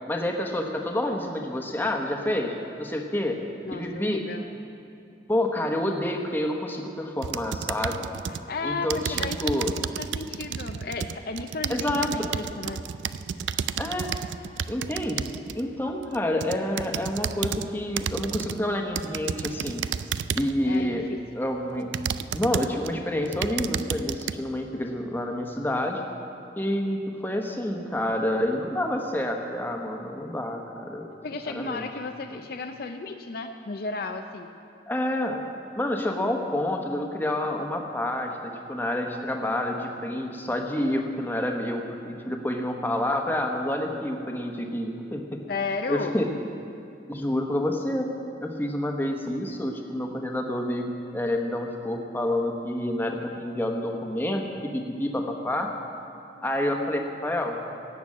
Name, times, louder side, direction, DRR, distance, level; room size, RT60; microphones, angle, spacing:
voice 1, 0.1-2.5 2.8-3.4 3.7-4.2 5.3-8.1 8.6-9.7 11.7-12.3 13.8-14.1 14.7-15.3 15.5-19.8 20.3-21.1 21.3-21.9 22.3-26.0 26.6-31.1 31.5-31.9 34.9-35.4 35.7-45.4 45.9-46.3 47.1-48.1 48.4-55.7 56.4-57.6, left 1 dB, 10° left, 2 dB, 1.1 m, -28 dB
voice 2, 3.6-4.4 8.3-9.5 9.8-12.8 20.6-21.2 31.2-34.5 45.5-46.2, left 3 dB, 50° left, 6 dB, 0.6 m, -34 dB
sound 1, 7.2-8.5 8.9-15.6 16.1-17.7 18.0-18.6 19.0-20.6 21.2-21.3 21.9-22.9 23.3-24.3, right 8 dB, 70° right, 0.4 m, -31 dB
17.5 x 7.0 x 8.6 m, 2.7 s
head